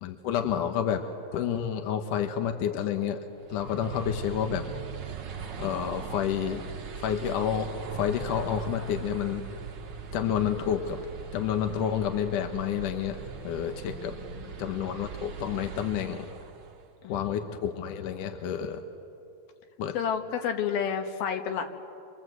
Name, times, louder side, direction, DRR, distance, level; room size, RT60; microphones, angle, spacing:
voice 1, 0.0-1.0 1.3-3.2 3.5-4.6 5.6-6.6 7.0-9.4 10.1-11.0 11.3-13.2 13.4-14.1 14.6-16.3 17.1-18.8 19.8-20.0, left 9 dB, 70° left, 5 dB, 2.5 m, -29 dB
sound 1, 3.4-16.9, right 6 dB, 60° right, 1.1 m, -40 dB
voice 2, 13.6-14.5 17.0-17.5 20.0-21.7, left 7 dB, 85° left, 4 dB, 3.4 m, -32 dB
27.0 x 24.5 x 8.0 m, 2.6 s
omnidirectional pair, 4.2 m